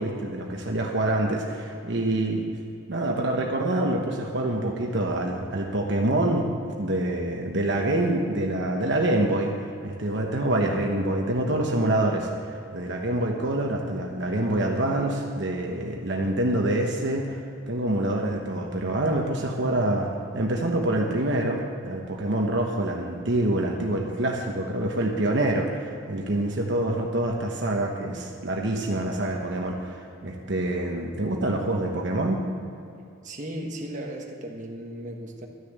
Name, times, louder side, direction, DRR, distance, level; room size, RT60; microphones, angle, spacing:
voice 1, 0.0-2.4 2.9-6.5 6.8-17.4 17.7-20.1 20.3-32.4, right 1 dB, 65° right, 1 dB, 1.2 m, -26 dB
voice 2, 33.2-35.5, right 1 dB, 40° right, 0 dB, 1.4 m, -36 dB
12.5 x 6.7 x 8.1 m, 2.5 s
head